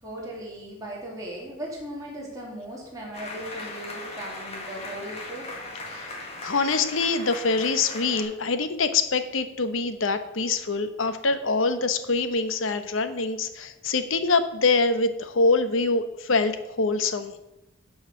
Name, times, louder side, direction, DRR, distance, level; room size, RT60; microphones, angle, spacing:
voice 1, 0.0-5.5, right 1 dB, 15° right, -4 dB, 2.7 m, -38 dB
sound 1, 3.1-8.2, left 2 dB, 30° left, 1.8 m, -38 dB
voice 2, 6.4-17.3, left 3 dB, 75° left, 10 dB, 0.9 m, -24 dB
12.0 x 4.8 x 6.5 m, 0.92 s
head